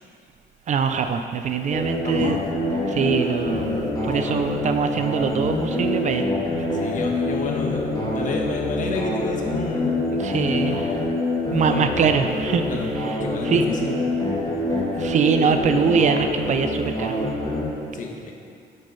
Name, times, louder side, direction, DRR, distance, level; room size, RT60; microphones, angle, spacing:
voice 1, 0.7-2.4 2.9-6.7 10.2-10.9 11.5-12.7 12.9-13.2 13.4-13.7 14.9-17.2, right 6 dB, 40° right, 7 dB, 0.5 m, -23 dB
sound 1, 1.7-17.7, left 1 dB, 20° left, 2.4 m, -26 dB
voice 2, 2.0-2.4 4.1-4.5 6.7-11.0 11.6-11.9 12.6-13.9 17.9-18.1, left 4 dB, 45° left, 1 dB, 1.3 m, -31 dB
9.1 x 7.4 x 5.5 m, 2.4 s
cardioid pair, 155°, 18 cm